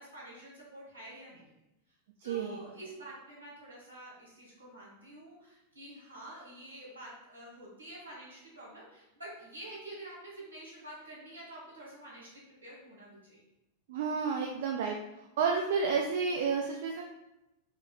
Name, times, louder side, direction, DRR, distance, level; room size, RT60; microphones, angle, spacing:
voice 1, 0.0-1.5 2.2-13.4, right 1 dB, 80° right, -6 dB, 1.4 m, -48 dB
voice 2, 2.2-2.6 13.9-15.0 15.4-17.0, right 5 dB, 55° right, 1 dB, 0.3 m, -30 dB
4.3 x 3.1 x 2.2 m, 0.91 s
figure-of-eight pair, 90°, 0 cm